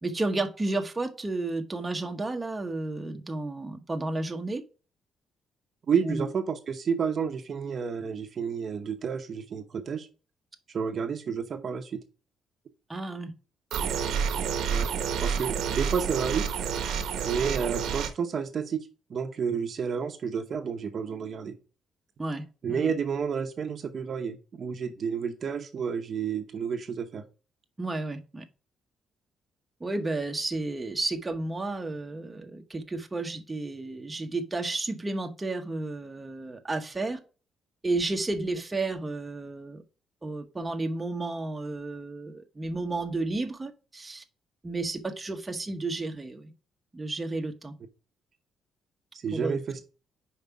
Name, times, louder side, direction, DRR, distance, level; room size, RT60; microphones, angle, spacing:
voice 1, 0.0-4.6 6.0-6.3 12.9-13.3 22.2-22.9 27.8-28.4 29.8-37.2 37.8-39.8 40.2-44.2 44.6-46.5 46.9-47.7 49.3-49.8, right 2 dB, 20° right, 1.0 m, -32 dB
voice 2, 5.9-10.1 10.7-12.0 14.7-14.9 15.2-16.5 17.2-21.6 22.6-27.2 49.1-49.8, right 6 dB, 50° right, 0.9 m, -30 dB
sound 1, 13.7-18.1, right 7 dB, 80° right, 1.0 m, -29 dB
5.3 x 4.7 x 4.7 m
cardioid pair, 90°, 0 cm